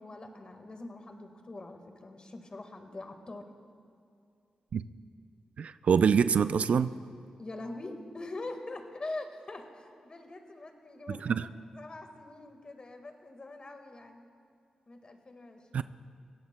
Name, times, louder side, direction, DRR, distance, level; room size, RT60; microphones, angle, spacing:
voice 1, 0.0-3.5 7.4-14.3 14.9-15.8, left 2 dB, 45° left, 5 dB, 1.6 m, -43 dB
voice 2, 5.6-6.9 11.1-11.5 15.7-15.8, right 6 dB, 70° right, 14 dB, 0.3 m, -25 dB
21.5 x 16.5 x 2.2 m, 2.4 s
cardioid pair, 55°, 2 cm